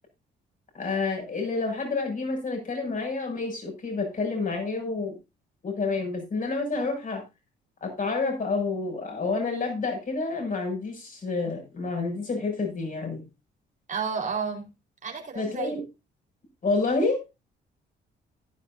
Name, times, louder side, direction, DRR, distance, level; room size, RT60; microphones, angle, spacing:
voice 1, 0.7-5.2 5.6-7.2 7.8-13.2 15.4-15.8 16.6-17.2, left 3 dB, 45° left, 7.0 m, -29 dB
voice 2, 13.9-14.7 15.0-15.7, right 5 dB, 40° right, 4.5 m, -31 dB
15.0 x 10.5 x 2.7 m
cardioid pair, 90°, 20 cm